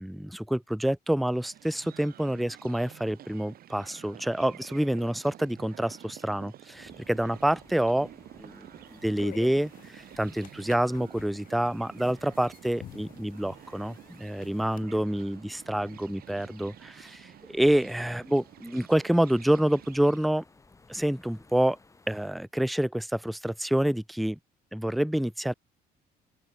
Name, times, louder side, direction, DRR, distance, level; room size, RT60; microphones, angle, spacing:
voice 1, 0.0-8.1 8.4-20.4 20.9-21.8 22.1-24.4 24.7-25.5, right 1 dB, ahead, 0.3 m, -27 dB
sound 1, 1.3-20.3, right 12 dB, 65° right, 4.1 m, -50 dB
sound 2, 6.7-22.3, left 3 dB, 20° left, 2.9 m, -59 dB
sound 3, 8.9-14.8, left 12 dB, 55° left, 0.8 m, -49 dB
open air
cardioid pair, 110°, 17 cm